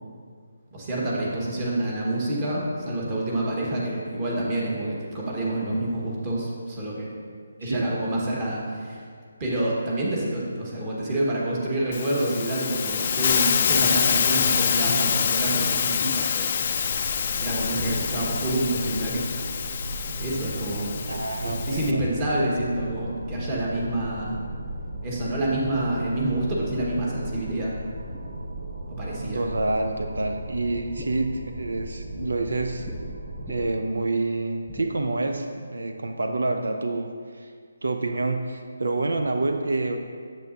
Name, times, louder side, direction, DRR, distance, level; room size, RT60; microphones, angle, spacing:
voice 1, 0.7-7.1 7.6-9.0 9.4-16.7 17.4-19.3 19.7-19.8 20.2-24.4 25.0-27.7 28.9-29.4, right 1 dB, 25° right, -5 dB, 1.6 m, -27 dB
Hiss, 11.9-21.9, left 7 dB, 35° left, 0.4 m, -26 dB
sound 1, 16.6-33.7, right 1 dB, 50° right, 1.1 m, -37 dB
voice 2, 21.1-22.1 29.2-32.9 33.5-37.1 37.3-37.5 37.8-40.0, right 2 dB, 85° right, 5 dB, 0.5 m, -27 dB
sound 2, 26.8-29.4 29.7-30.3 30.6-32.3 32.8-33.0 33.4-33.9 34.7-34.9, right 1 dB, 5° right, 0.6 m, -43 dB
9.0 x 7.7 x 2.8 m, 2.1 s
hypercardioid pair, 165°, 0 cm